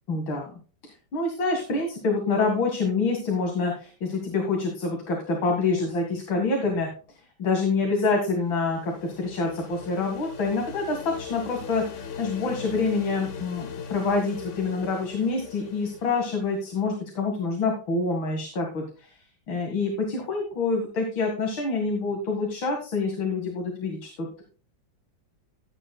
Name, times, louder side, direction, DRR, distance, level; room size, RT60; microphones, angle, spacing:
voice 1, 0.1-0.5 1.1-6.9 7.4-19.2 19.5-24.4, left 3 dB, 90° left, 2 dB, 2.7 m, -26 dB
sound 1, 8.1-16.9, left 6 dB, 50° left, 1.0 m, -40 dB
15.0 x 9.2 x 2.3 m, 0.36 s
omnidirectional pair, 2.1 m